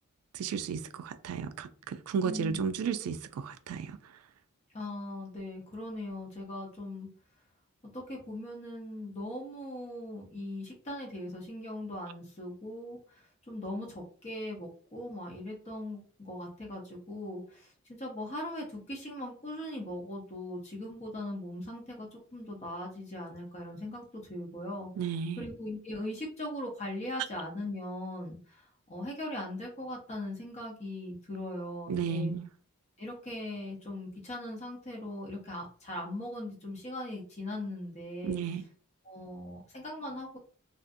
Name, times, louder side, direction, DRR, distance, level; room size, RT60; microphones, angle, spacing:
voice 1, 0.3-4.0 25.0-25.4 31.9-32.5 38.2-38.6, right 6 dB, 85° right, 0.3 m, -33 dB
voice 2, 2.2-2.7 4.7-7.1 7.9-24.0 24.3-24.9 25.4-32.3 33.0-38.4 39.0-40.4, left 1 dB, 30° left, 0.6 m, -40 dB
2.5 x 2.4 x 2.5 m
head